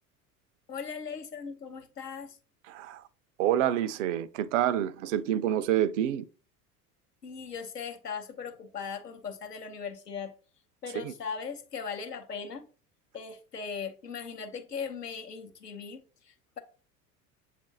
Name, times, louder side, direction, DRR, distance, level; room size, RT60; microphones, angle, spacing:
voice 1, 0.7-2.4 7.2-10.3 10.8-12.7 13.1-16.6, left 6 dB, 85° left, 0.7 m, -39 dB
voice 2, 2.6-3.1 3.4-6.3 10.9-11.1, right 11 dB, 55° right, 0.5 m, -28 dB
7.2 x 2.5 x 2.6 m
figure-of-eight pair, 70°, 47 cm